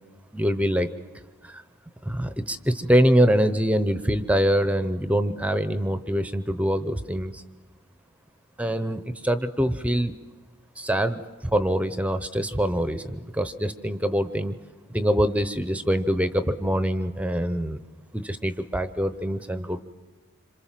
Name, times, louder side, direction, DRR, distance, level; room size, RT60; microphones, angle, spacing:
voice 1, 0.3-0.9 1.4-1.6 2.0-7.4 8.6-10.1 10.8-14.6 14.9-17.8 18.1-19.8, equal, 5° right, 11 dB, 0.8 m, -24 dB
27.0 x 26.5 x 7.5 m, 1.3 s
head